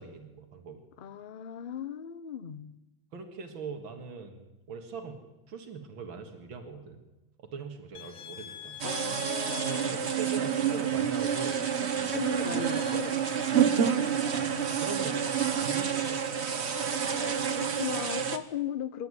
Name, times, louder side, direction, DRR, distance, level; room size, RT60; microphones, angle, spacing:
voice 1, 0.0-0.8 3.1-5.2 5.5-7.0 7.4-8.8 9.6-13.0 14.3-14.5 14.8-15.2 15.6-16.2, right 5 dB, 85° right, 5 dB, 2.6 m, -41 dB
voice 2, 1.0-2.8 8.8-10.1 12.1-13.2 13.8-14.8 17.1-19.1, left 9 dB, 55° left, 15 dB, 0.6 m, -38 dB
sound 1, 7.9-13.0, left 11 dB, 85° left, 2.3 m, -47 dB
sound 2, 8.8-18.4, right 7 dB, 40° right, 1.2 m, -28 dB
26.5 x 11.5 x 9.7 m, 1.0 s
omnidirectional pair, 2.1 m